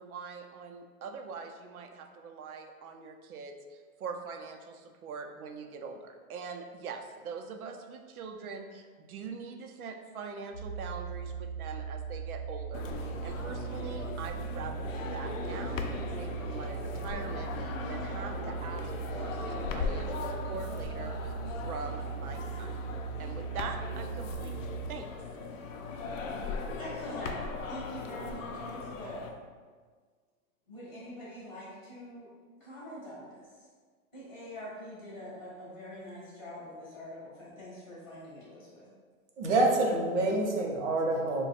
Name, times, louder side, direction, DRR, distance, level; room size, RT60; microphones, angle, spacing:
voice 1, 0.0-22.8 23.2-24.6 24.9-25.1, right 5 dB, 85° right, 5 dB, 0.6 m, -43 dB
sound 1, 10.5-24.9, right 7 dB, 30° left, 0.7 m, -39 dB
sound 2, 12.7-29.3, left 4 dB, 65° left, 0.5 m, -38 dB
voice 2, 26.8-29.3 30.7-32.3 32.6-33.5 34.1-38.9, equal, ahead, -29 dB, 0.3 m, -44 dB
voice 3, 39.4-41.4, right 2 dB, 55° right, 0 dB, 0.8 m, -27 dB
3.2 x 2.3 x 4.1 m, 1.5 s
hypercardioid pair, 165°, 42 cm